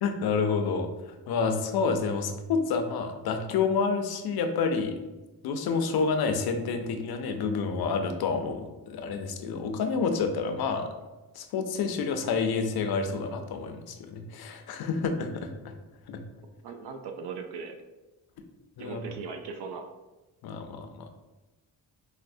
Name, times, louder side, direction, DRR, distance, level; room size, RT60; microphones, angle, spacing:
voice 1, 0.0-5.0 5.4-10.9 11.3-15.7 16.1-16.2 18.8-19.1 20.4-21.1, left 5 dB, 70° left, 6 dB, 0.5 m, -29 dB
voice 2, 16.6-17.7 18.8-19.9, right 5 dB, 90° right, 4 dB, 0.5 m, -38 dB
4.2 x 2.0 x 2.6 m, 1.1 s
wide cardioid pair, 130°, 39 cm